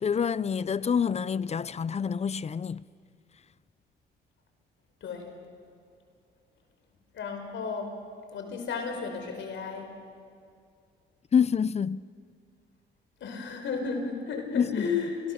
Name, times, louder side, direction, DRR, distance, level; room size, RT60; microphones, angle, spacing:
voice 1, 0.0-2.8 11.3-12.1 14.5-15.0, left 7 dB, 35° left, 0.5 m, -27 dB
voice 2, 5.0-5.3 7.1-7.9 8.3-9.9 13.2-15.3, left 5 dB, 70° left, 4.7 m, -33 dB
28.5 x 22.5 x 6.6 m
cardioid pair, 90°, 20 cm